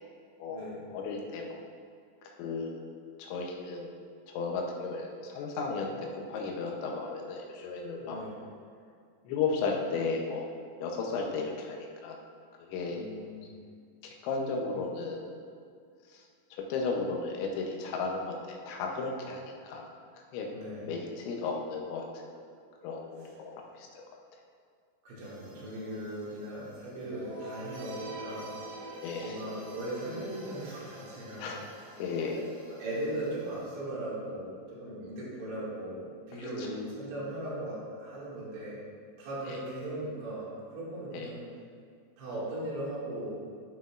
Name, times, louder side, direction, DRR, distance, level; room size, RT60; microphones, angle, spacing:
voice 1, 0.9-1.6 2.2-2.8 3.2-4.0 4.3-8.2 9.3-10.4 10.8-12.2 12.6-13.0 14.0-15.3 16.1-16.2 16.5-19.9 20.3-20.5 20.9-22.4 22.8-24.0 29.0-29.3 31.4-31.6 32.0-32.4 36.4-36.7 39.5-39.6 41.1-41.3, left 4 dB, 85° left, 1 dB, 3.2 m, -34 dB
voice 2, 8.0-8.3 12.9-13.6 20.5-20.9 25.0-28.5 28.8-28.9 29.2-31.9 32.3-38.8 39.2-41.4 42.2-43.4, right 1 dB, 90° right, -9 dB, 4.4 m, -38 dB
sound 1, 25.2-33.8, right 1 dB, 65° right, 2.5 m, -46 dB
11.5 x 5.6 x 2.5 m, 2.2 s
omnidirectional pair, 5.2 m